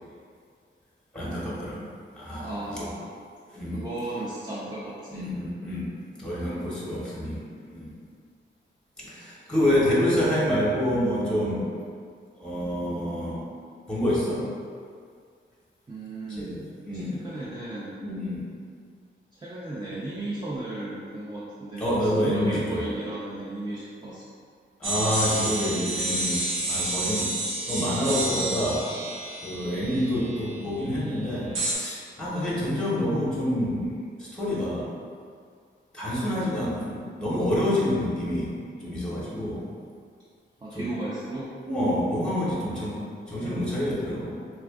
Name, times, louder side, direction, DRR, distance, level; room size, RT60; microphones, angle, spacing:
voice 1, 1.1-1.9 2.1-2.9 3.5-3.8 5.1-5.9 6.2-7.4 7.7-7.9 9.0-11.7 12.4-13.4 13.9-14.5 16.3-17.2 18.0-18.5 21.8-22.9 24.8-26.4 26.7-27.3 27.7-28.9 29.4-34.9 35.9-38.5 38.8-39.7 40.7-40.9 41.6-44.4, left 1 dB, 5° left, -7 dB, 0.9 m, -27 dB
voice 2, 2.4-3.1 3.7-5.3 15.9-16.7 16.9-18.0 19.3-24.3 40.6-41.5, right 1 dB, 20° right, -7 dB, 0.5 m, -35 dB
sound 1, 24.8-30.5 31.5-31.7, right 2 dB, 90° right, 0.8 m, -29 dB
3.3 x 2.4 x 3.5 m, 2.1 s
wide cardioid pair, 130°, 20 cm